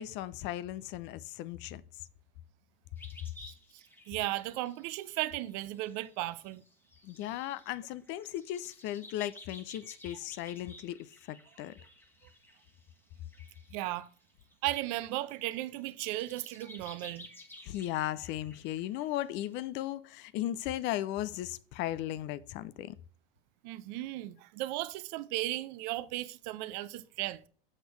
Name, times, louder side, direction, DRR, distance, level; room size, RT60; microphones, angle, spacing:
voice 1, 0.0-1.8 7.0-11.0 11.3-11.7 17.6-23.0, left 13 dB, 40° left, 0.5 m, -36 dB
sound 1, 3.0-14.8 15.3-19.6, left 1 dB, 5° left, 1.3 m, -55 dB
voice 2, 3.5-6.6 13.7-14.1 14.6-17.3 23.6-27.4, right 16 dB, 50° right, 0.6 m, -36 dB
7.8 x 6.5 x 3.2 m
figure-of-eight pair, 85°, 29 cm